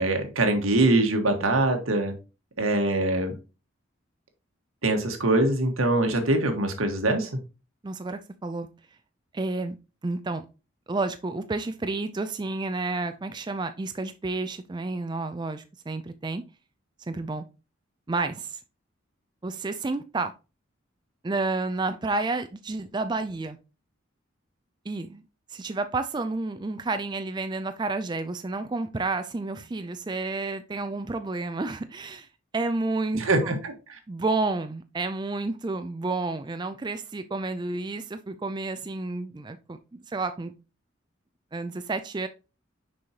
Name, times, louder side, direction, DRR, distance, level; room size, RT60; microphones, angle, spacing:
voice 1, 0.0-2.1 2.6-3.4 4.8-7.3 33.2-34.0, right 2 dB, 90° right, 1.6 m, -23 dB
voice 2, 7.8-8.7 9.3-9.8 10.0-10.5 10.9-16.4 17.1-17.4 18.1-18.6 19.4-20.3 21.2-23.6 24.9-25.2 25.5-32.3 32.5-33.5 34.1-40.5 41.5-42.3, right 3 dB, 20° right, 0.4 m, -30 dB
6.3 x 5.5 x 2.9 m
head